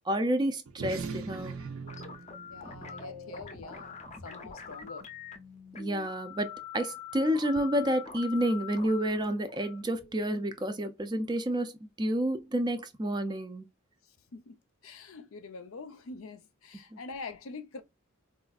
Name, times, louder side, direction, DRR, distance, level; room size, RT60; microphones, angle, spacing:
voice 1, 0.1-1.6 5.7-13.7 16.9-17.0, right 1 dB, 20° right, 0.3 m, -30 dB
sound 1, 0.7-5.5, right 4 dB, 75° right, 0.6 m, -42 dB
sound 2, 1.9-10.8, left 7 dB, 30° left, 0.5 m, -45 dB
voice 2, 2.5-5.1 14.3-17.8, left 4 dB, 75° left, 0.6 m, -45 dB
4.2 x 2.3 x 2.3 m
head